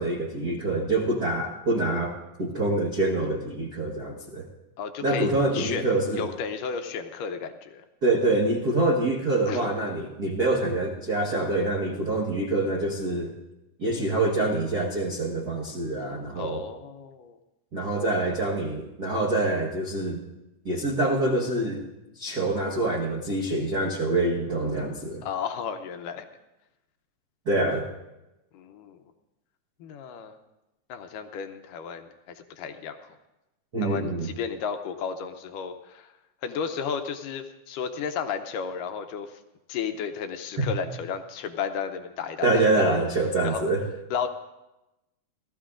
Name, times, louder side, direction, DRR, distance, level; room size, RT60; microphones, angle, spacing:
voice 1, 0.0-2.1 2.4-4.5 5.0-6.3 8.0-13.3 13.8-16.6 17.7-20.2 20.6-21.9 22.1-25.2 27.4-27.9 33.7-34.3 40.6-40.7 42.4-43.8, right 2 dB, 65° right, -3 dB, 0.9 m, -25 dB
voice 2, 4.8-5.9 6.1-7.9 9.5-9.7 16.4-17.4 25.2-26.3 28.5-29.0 29.8-30.4 30.9-33.2 33.8-36.1 36.4-39.4 39.7-42.8 43.4-43.7 44.1-44.3, left 6 dB, 75° left, 7 dB, 2.1 m, -33 dB
30.0 x 13.5 x 2.5 m, 0.97 s
omnidirectional pair, 4.1 m